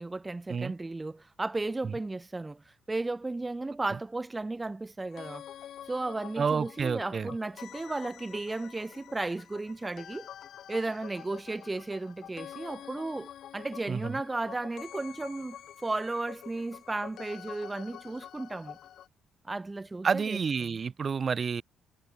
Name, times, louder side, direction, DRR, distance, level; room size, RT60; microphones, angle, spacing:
voice 1, 0.0-5.4 5.9-10.3 10.7-15.6 15.8-18.8 19.4-20.8, right 2 dB, 20° right, 1.4 m, -34 dB
sound 1, 5.1-19.1, left 10 dB, 70° left, 1.8 m, -47 dB
voice 2, 6.4-7.3 13.9-14.2 20.0-21.6, right 6 dB, 40° right, 1.3 m, -29 dB
cardioid pair, 90°, 0 cm